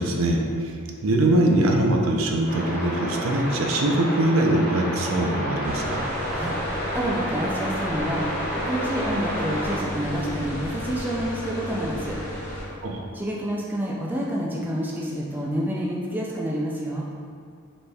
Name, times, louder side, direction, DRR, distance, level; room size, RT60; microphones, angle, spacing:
voice 1, 0.0-6.1 12.8-13.1, right 1 dB, 70° right, 1 dB, 0.5 m, -22 dB
sound 1, 2.5-9.8, equal, 40° left, 1.3 m, -30 dB
sound 2, 5.6-12.6, left 1 dB, 70° left, 1.4 m, -33 dB
voice 2, 6.9-12.2 13.1-17.0, equal, 10° right, -4 dB, 0.4 m, -28 dB
4.2 x 3.3 x 3.4 m, 2.3 s
head